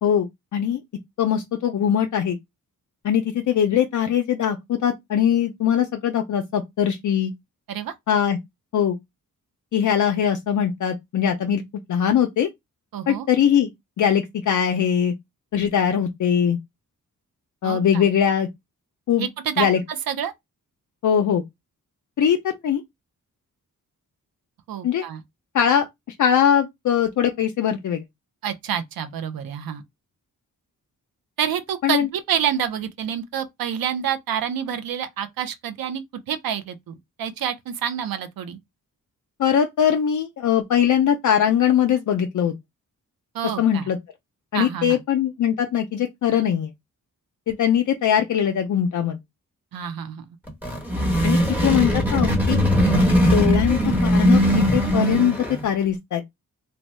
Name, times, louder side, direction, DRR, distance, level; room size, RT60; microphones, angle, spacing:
voice 1, 0.0-0.8 1.2-2.4 3.0-7.3 8.1-8.4 8.7-9.0 9.7-11.6 11.9-12.5 13.1-13.7 14.0-15.1 15.5-16.6 17.6-18.5 19.1-19.3 19.6-19.8 21.0-21.4 22.2-22.8 24.8-25.0 25.5-25.8 26.2-28.0 31.8-32.1 39.4-42.5 43.6-44.0 44.5-46.7 47.5-49.2 51.2-52.6 53.3-56.2, left 9 dB, 60° left, 0.5 m, -21 dB
voice 2, 12.9-13.3 17.6-18.1 19.2-19.7 20.1-20.3 24.7-25.2 28.4-29.8 31.4-38.6 43.3-43.9 44.5-45.0 49.7-50.3, right 9 dB, 80° right, 0.5 m, -28 dB
sound 1, 50.5-55.8, equal, 5° right, 1.0 m, -20 dB
2.7 x 2.2 x 3.1 m
wide cardioid pair, 125°, 34 cm